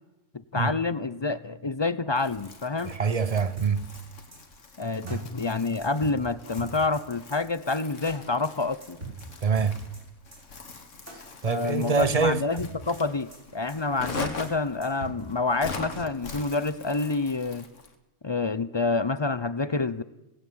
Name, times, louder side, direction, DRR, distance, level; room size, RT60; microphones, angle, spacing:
voice 1, 0.5-3.0 4.8-9.0 11.5-17.7 18.2-20.0, left 3 dB, 35° left, 0.4 m, -28 dB
Crumpling crinkling, 2.2-18.0, left 4 dB, 60° left, 2.3 m, -42 dB
voice 2, 2.8-3.9 5.0-5.2 9.4-9.9 11.4-12.4, right 5 dB, 30° right, 0.8 m, -25 dB
sound 1, 3.6-4.0 4.3-4.4 4.7-4.8 5.1-5.2 5.4-5.5 5.8-6.2 6.6-7.0 7.3-7.4 7.7-7.8 8.1-8.2 8.4-8.5 8.8-9.2 9.6-10.0 10.3-10.4 10.7-10.8 11.1-11.2 11.4-11.5 11.8-12.2 12.6-13.0 13.3-13.4 13.7-13.8 14.1-14.2 14.4-14.5 14.8-15.2, right 3 dB, 55° right, 6.1 m, -40 dB
18.5 x 16.0 x 8.8 m
omnidirectional pair, 1.4 m